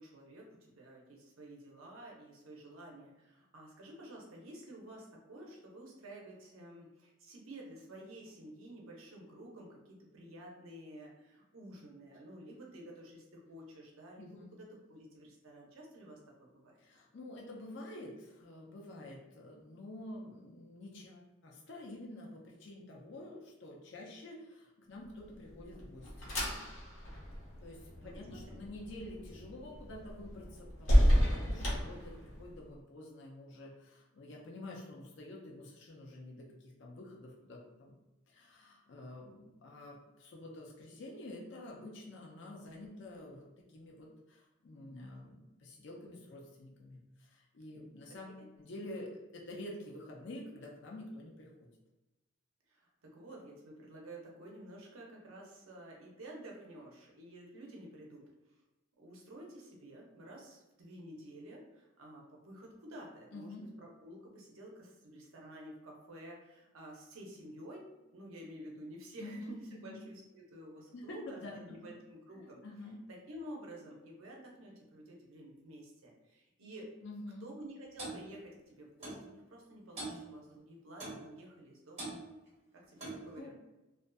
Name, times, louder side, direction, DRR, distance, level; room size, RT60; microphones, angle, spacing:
voice 1, 0.0-16.8 28.0-28.6 48.1-48.5 52.7-58.6 59.0-72.6 73.1-76.9 77.4-82.1 82.7-83.6, right 1 dB, 90° right, -1 dB, 0.7 m, -51 dB
voice 2, 14.2-14.5 16.8-26.3 27.6-38.0 38.3-51.7 63.3-63.7 69.2-70.0 70.9-71.8 72.3-73.0 77.0-77.5 83.4-83.5, left 1 dB, 60° left, -2 dB, 0.4 m, -48 dB
sound 1, 25.3-32.6, equal, 80° left, 1.0 m, -32 dB
Clock, 78.0-78.2 79.0-79.2 80.0-80.2 81.0-81.2 82.0-82.2 83.0-83.3, right 2 dB, 30° right, 0.9 m, -41 dB
2.5 x 2.4 x 2.2 m, 1.0 s
head